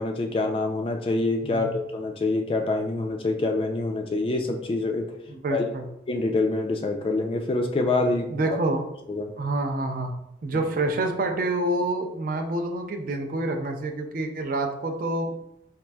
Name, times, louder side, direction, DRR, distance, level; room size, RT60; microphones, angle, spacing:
voice 1, 0.0-5.1 5.5-5.6 6.1-8.6 9.1-9.3 10.5-10.6, left 2 dB, 30° left, 4 dB, 0.3 m, -26 dB
voice 2, 5.4-5.9 8.3-8.8 9.4-10.1 10.4-15.4, right 2 dB, 45° right, 4 dB, 0.4 m, -27 dB
4.3 x 2.4 x 2.2 m, 0.83 s
head